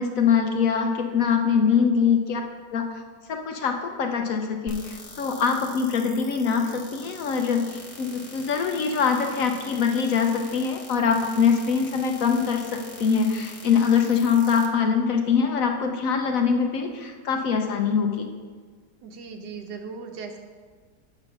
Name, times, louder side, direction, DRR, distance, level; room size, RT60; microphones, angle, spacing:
voice 1, 0.0-2.4 2.7-3.0 3.3-18.3, left 6 dB, 60° left, 4 dB, 1.0 m, -23 dB
voice 2, 1.7-2.0 19.0-20.4, right 5 dB, 90° right, 5 dB, 1.5 m, -38 dB
sound 1, 4.7-14.7, left 2 dB, 30° left, 0.7 m, -44 dB
7.8 x 5.9 x 5.8 m, 1.5 s
omnidirectional pair, 1.8 m